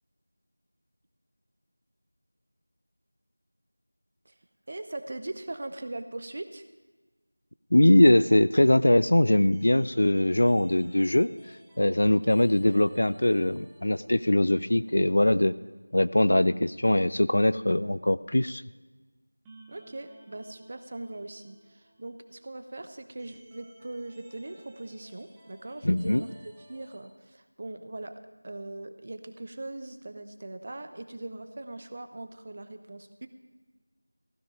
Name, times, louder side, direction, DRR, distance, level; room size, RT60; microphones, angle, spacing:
voice 1, 4.7-6.6 12.1-12.2 19.7-28.1 28.4-33.3, right 2 dB, 30° right, 9 dB, 0.8 m, -40 dB
voice 2, 7.7-11.3 11.8-15.6 15.9-18.6 25.8-26.2, left 1 dB, 50° left, 15 dB, 0.4 m, -22 dB
sound 1, 9.5-15.4 15.7-15.8 19.4-27.0, right 2 dB, 5° right, 0.9 m, -58 dB
15.5 x 13.5 x 5.0 m, 1.3 s
figure-of-eight pair, 175°, 0 cm